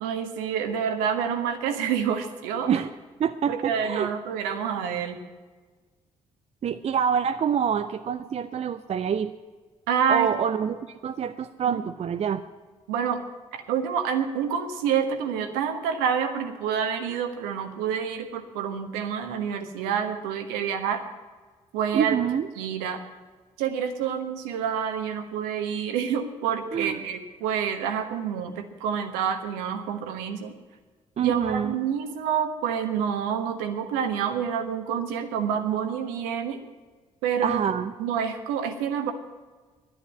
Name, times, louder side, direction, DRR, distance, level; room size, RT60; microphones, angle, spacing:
voice 1, 0.0-2.8 3.5-5.2 9.9-10.3 11.7-11.8 12.9-13.2 13.5-21.0 21.7-22.2 22.6-23.0 23.6-30.5 31.2-36.6 37.2-37.6 38.0-39.1, right 7 dB, 70° right, 7 dB, 1.2 m, -28 dB
voice 2, 3.2-4.1 6.6-9.3 10.1-12.4 21.9-22.5 26.7-27.0 31.2-31.8 37.4-37.9, right 8 dB, 40° right, 10 dB, 0.6 m, -26 dB
11.0 x 10.5 x 8.6 m, 1.4 s
figure-of-eight pair, 40°, 16 cm